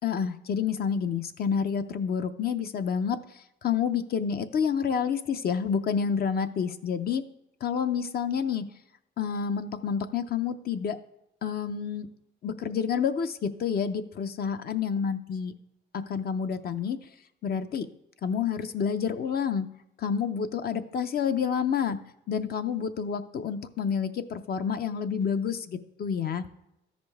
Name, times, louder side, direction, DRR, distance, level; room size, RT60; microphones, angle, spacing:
voice 1, 0.0-7.2 7.6-8.7 9.2-11.0 11.4-12.1 12.4-15.5 15.9-17.0 17.4-17.9 18.2-19.7 20.0-22.0 22.3-26.4, left 7 dB, 50° left, 9 dB, 0.6 m, -29 dB
13.5 x 5.1 x 3.4 m, 0.87 s
cardioid pair, 90°, 20 cm